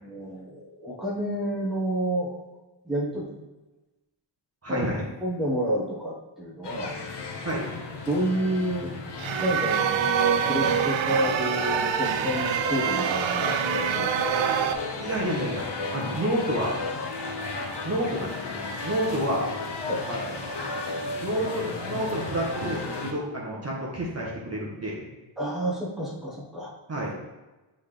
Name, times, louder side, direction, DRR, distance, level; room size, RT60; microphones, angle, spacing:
voice 1, 0.0-2.4 2.8-3.4 4.7-4.9 5.2-7.0 8.0-9.0 9.4-14.6 14.9-15.1 19.9-20.0 25.4-26.7, right 1 dB, ahead, -5 dB, 1.3 m, -30 dB
voice 2, 4.6-5.0 7.4-7.7 15.0-16.7 17.8-18.5 18.8-19.6 20.1-20.3 21.2-25.0 26.9-27.1, right 1 dB, 35° right, -4 dB, 1.1 m, -29 dB
sound 1, 6.6-23.1, left 3 dB, 60° left, 1.0 m, -34 dB
sound 2, 9.2-14.7, right 8 dB, 80° right, 0.6 m, -25 dB
7.9 x 3.9 x 3.4 m, 1.1 s
wide cardioid pair, 155°, 46 cm